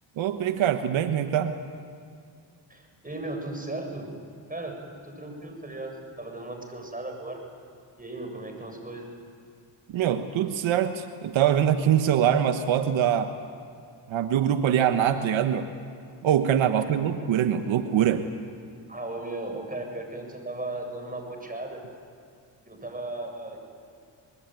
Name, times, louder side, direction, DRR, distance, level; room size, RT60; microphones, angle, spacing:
voice 1, 0.2-1.5 9.9-13.3 14.1-15.7 16.2-18.2, right 9 dB, 75° right, 8 dB, 1.3 m, -23 dB
voice 2, 2.7-4.1 4.5-4.8 5.0-7.4 8.0-9.1 16.7-16.9 18.9-21.8 22.7-23.6, right 2 dB, 20° right, 3 dB, 7.7 m, -36 dB
25.0 x 20.5 x 9.3 m, 2.4 s
supercardioid pair, 60°, 47 cm